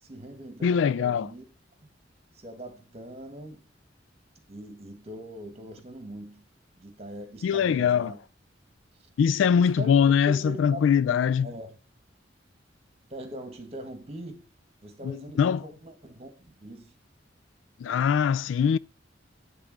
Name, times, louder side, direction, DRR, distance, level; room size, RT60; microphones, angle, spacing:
voice 1, 0.0-1.4 1.8-1.9 2.3-3.7 4.5-6.4 6.8-8.2 9.5-10.0 10.3-11.8 13.1-14.5 14.8-16.9, right 1 dB, 35° right, 1.8 m, -42 dB
voice 2, 0.6-1.3 7.4-8.1 9.2-11.5 15.0-15.6 17.8-18.8, left 7 dB, 75° left, 0.3 m, -22 dB
10.0 x 3.7 x 6.5 m
head